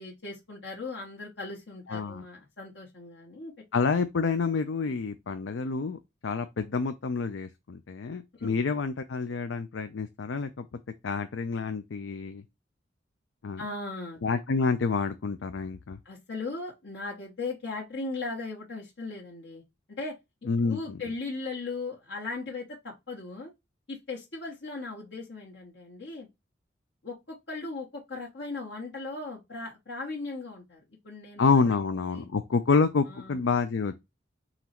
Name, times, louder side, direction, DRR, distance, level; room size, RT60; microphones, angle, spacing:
voice 1, 0.0-3.5 8.3-8.6 13.6-14.2 16.0-19.6 19.9-20.2 20.6-23.5 23.9-26.3 27.0-31.8 32.1-32.3 33.1-33.4, left 3 dB, 70° left, 1.2 m, -38 dB
voice 2, 1.9-2.2 3.7-10.7 11.0-12.4 13.4-13.6 14.2-16.0 20.5-20.8 31.4-34.0, left 4 dB, 90° left, 0.5 m, -28 dB
3.9 x 3.0 x 4.3 m
head